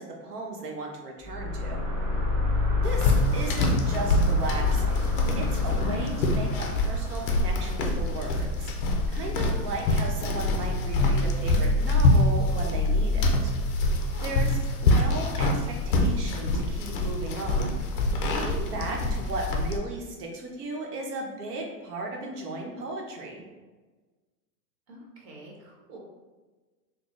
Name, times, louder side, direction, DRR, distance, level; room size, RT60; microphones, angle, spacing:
voice 1, 0.0-1.8 2.8-5.0 5.4-8.7 9.1-13.5 14.2-23.4, right 2 dB, 75° right, 0 dB, 1.1 m, -36 dB
sound 1, 1.2-9.5, left 3 dB, 35° right, 1.1 m, -30 dB
sound 2, 2.8-19.8, left 2 dB, 35° left, 0.4 m, -25 dB
voice 2, 14.1-14.4 24.9-26.0, right 1 dB, 55° right, -2 dB, 1.4 m, -46 dB
3.9 x 2.2 x 3.1 m, 1.3 s
hypercardioid pair, 130°, 47 cm